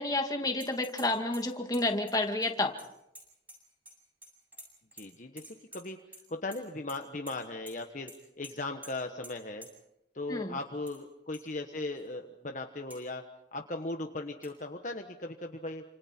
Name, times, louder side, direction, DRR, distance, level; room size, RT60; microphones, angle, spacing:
voice 1, 0.0-2.7 10.3-10.6, left 2 dB, 20° left, 3 dB, 2.3 m, -30 dB
sound 1, 0.6-1.1 1.3-4.0 4.2-5.1 5.4-6.2 6.5-7.0 7.3-7.4 7.7-7.8 8.1-8.2 8.4-8.5 8.8-8.9 9.2-9.3 9.6-9.7 10.6-11.0 11.3-11.4 12.0-12.1 12.9-13.0 14.4-14.5, right 1 dB, 10° right, 7.8 m, -49 dB
voice 2, 5.0-6.0 6.3-8.1 8.4-9.7 10.1-13.2 13.5-15.8, left 2 dB, 45° left, 4 dB, 1.3 m, -38 dB
29.5 x 27.0 x 4.5 m, 0.86 s
head